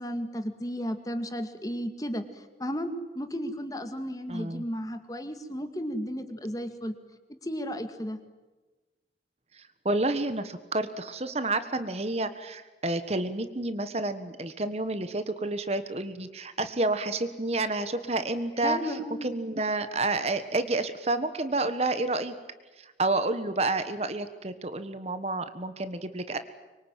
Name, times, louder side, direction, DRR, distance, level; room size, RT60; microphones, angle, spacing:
voice 1, 0.0-6.9 7.4-8.2 18.6-19.3, equal, 20° left, 7 dB, 2.0 m, -34 dB
voice 2, 4.3-4.6 9.8-18.8 19.2-22.3 22.8-26.4, right 2 dB, 35° right, 10 dB, 1.4 m, -29 dB
25.0 x 23.5 x 9.1 m, 1.2 s
head